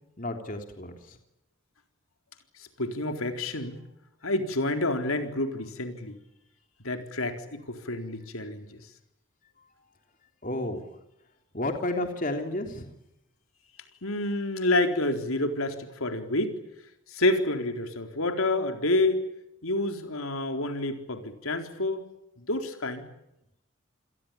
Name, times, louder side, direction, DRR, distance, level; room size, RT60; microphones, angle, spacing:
voice 1, 0.2-1.2 10.4-10.9 11.5-12.9, left 1 dB, 40° left, 5 dB, 3.4 m, -32 dB
voice 2, 2.6-3.8 4.2-6.2 6.8-8.8 14.0-16.5 17.1-19.2 19.6-22.1 22.5-23.0, left 2 dB, 80° left, 6 dB, 4.1 m, -28 dB
28.5 x 22.0 x 8.7 m, 0.85 s
head